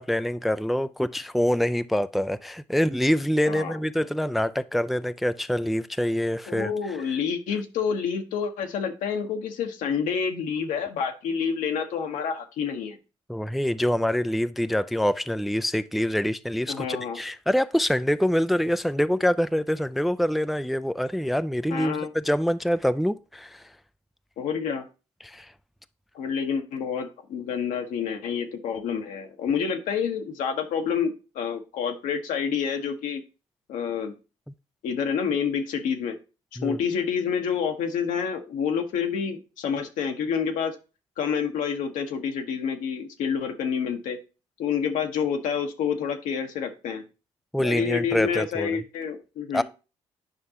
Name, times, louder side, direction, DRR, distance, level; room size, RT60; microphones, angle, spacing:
voice 1, 0.0-7.0 13.3-23.7 25.2-25.5 36.6-36.8 47.5-48.8 49.5-49.6, equal, ahead, 0.4 m, -25 dB
voice 2, 3.5-3.8 6.5-13.0 16.7-17.2 21.7-22.1 24.4-24.8 26.1-33.2 33.7-34.1 34.8-36.2 36.6-40.7 41.2-44.2 44.6-47.0 47.6-49.6, left 7 dB, 75° left, 1.1 m, -28 dB
9.5 x 5.3 x 2.8 m
hypercardioid pair, 55°, 13 cm